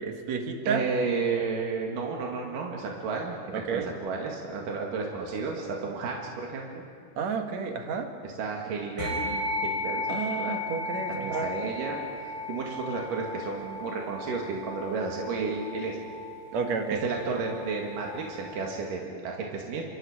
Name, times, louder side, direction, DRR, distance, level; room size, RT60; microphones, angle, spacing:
voice 1, 0.0-0.9 3.5-3.9 7.2-8.1 10.1-11.5 16.5-17.0, right 5 dB, 60° right, 4 dB, 2.7 m, -31 dB
voice 2, 0.7-6.8 8.2-10.1 10.4-10.6 11.1-12.0 12.5-16.1 17.0-19.8, right 4 dB, 80° right, -1 dB, 3.6 m, -32 dB
sound 1, 9.0-18.7, left 2 dB, 80° left, 5.9 m, -35 dB
27.0 x 25.5 x 5.0 m, 2.2 s
omnidirectional pair, 3.8 m